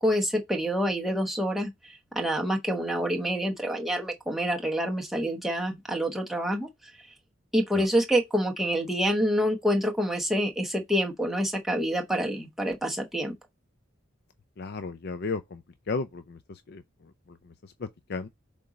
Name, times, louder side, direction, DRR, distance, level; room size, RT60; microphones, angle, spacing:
voice 1, 0.0-6.7 7.5-13.3, equal, ahead, 0.9 m, -27 dB
voice 2, 14.6-18.3, left 4 dB, 55° left, 0.5 m, -35 dB
6.7 x 3.7 x 4.1 m
head